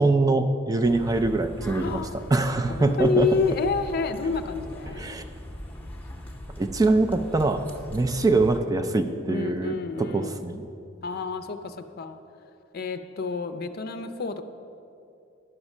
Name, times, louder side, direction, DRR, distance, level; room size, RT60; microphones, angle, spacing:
voice 1, 0.0-3.3 4.9-5.2 6.6-7.6 7.9-10.7, right 2 dB, 20° right, 6 dB, 0.4 m, -23 dB
sound 1, 0.8-8.6, left 1 dB, 10° left, 0.7 m, -40 dB
voice 2, 1.8-2.2 2.7-5.1 9.3-10.4 11.0-12.2 12.7-14.4, left 4 dB, 50° left, 9 dB, 0.5 m, -28 dB
11.0 x 6.0 x 5.4 m, 2.6 s
head